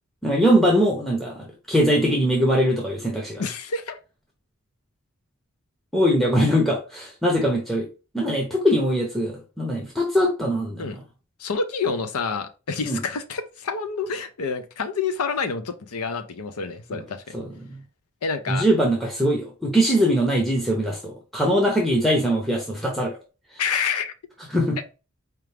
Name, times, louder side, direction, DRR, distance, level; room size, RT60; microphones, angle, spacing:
voice 1, 0.2-3.4 5.9-7.9 8.1-11.0 12.9-13.0 16.9-17.0 17.3-17.8 18.5-23.2 24.5-24.8, equal, ahead, 0.6 m, -22 dB
voice 2, 3.4-4.0 10.8-11.0 11.4-17.4 18.2-18.7 23.6-24.1, left 5 dB, 85° left, 0.6 m, -28 dB
4.5 x 2.4 x 3.3 m
head